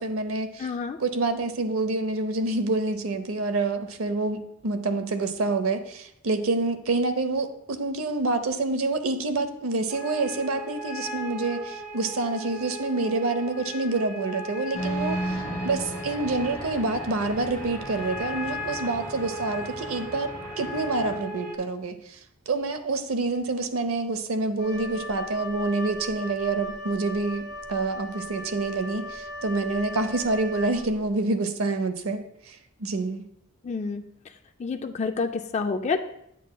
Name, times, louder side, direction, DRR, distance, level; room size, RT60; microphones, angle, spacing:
voice 1, 0.0-0.7 1.0-22.2 22.5-27.4 27.7-32.2 32.5-33.2, right 3 dB, 90° right, 9 dB, 0.6 m, -27 dB
voice 2, 0.6-1.0 33.6-34.0 34.6-36.0, left 4 dB, 35° left, 6 dB, 0.3 m, -28 dB
sound 1, 9.9-21.6, right 1 dB, 40° right, 0.6 m, -37 dB
sound 2, 14.7-21.2, equal, 15° left, 2.7 m, -36 dB
Wind instrument woodwind instrument, 24.6-31.1, left 1 dB, 20° right, 1.4 m, -38 dB
8.3 x 7.2 x 2.2 m, 0.77 s
head